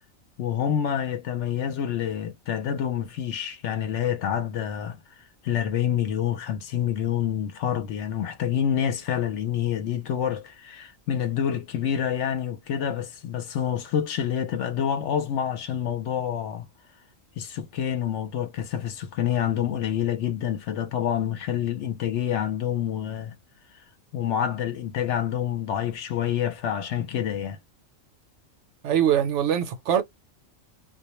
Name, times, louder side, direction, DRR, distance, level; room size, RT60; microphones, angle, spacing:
voice 1, 0.4-5.0 5.4-16.7 17.4-23.3 24.1-27.6, left 9 dB, 65° left, 0.8 m, -27 dB
voice 2, 28.8-30.0, right 9 dB, 70° right, 0.8 m, -22 dB
2.2 x 2.1 x 2.9 m
omnidirectional pair, 1.4 m